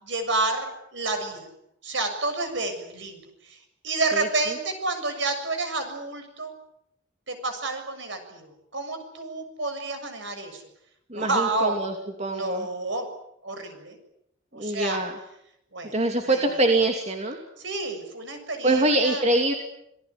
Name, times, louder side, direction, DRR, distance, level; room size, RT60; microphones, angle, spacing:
voice 1, 0.0-1.5 1.8-3.6 3.8-6.5 7.3-10.6 11.1-11.8 12.3-13.1 13.4-14.0 14.5-15.0 15.7-15.9 16.2-16.4 17.6-19.2, right 2 dB, 65° right, 7 dB, 7.1 m, -29 dB
voice 2, 11.1-11.9 12.2-12.7 14.5-15.1 15.9-17.4 18.6-19.5, right 2 dB, 35° right, 3 dB, 2.7 m, -24 dB
27.5 x 18.5 x 9.7 m, 0.79 s
head